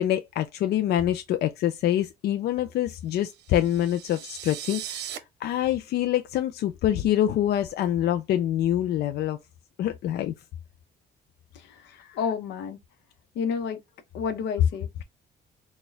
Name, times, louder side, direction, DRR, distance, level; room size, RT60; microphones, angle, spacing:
voice 1, 0.0-5.1 5.4-9.4 9.8-10.3 11.9-12.2, left 12 dB, 70° left, 0.4 m, -25 dB
sound 1, 3.3-5.2, right 11 dB, 75° right, 0.8 m, -38 dB
voice 2, 12.1-12.8 13.3-13.8 14.1-15.0, left 6 dB, 90° left, 0.9 m, -30 dB
4.2 x 2.3 x 3.3 m
cardioid pair, 115°, 18 cm